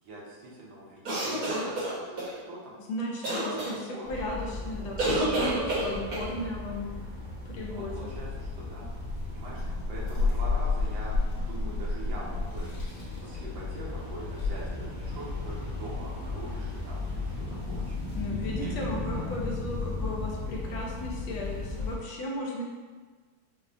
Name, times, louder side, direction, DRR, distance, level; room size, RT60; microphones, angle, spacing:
voice 1, 0.0-2.8 3.5-3.6 3.9-4.0 7.6-8.9 9.2-12.7 13.2-18.2 18.6-19.2, right 2 dB, 70° right, -5 dB, 1.4 m, -43 dB
sound 1, 1.0-2.3 3.2-3.7 5.0-6.3, right 1 dB, 55° right, 1.1 m, -28 dB
voice 2, 2.9-3.8 4.1-6.9 7.5-8.1 18.1-22.6, left 1 dB, 75° left, -2 dB, 1.4 m, -35 dB
sound 2, 4.1-22.0, left 3 dB, 55° left, 0.5 m, -33 dB
5.4 x 2.0 x 2.5 m, 1.4 s
omnidirectional pair, 2.3 m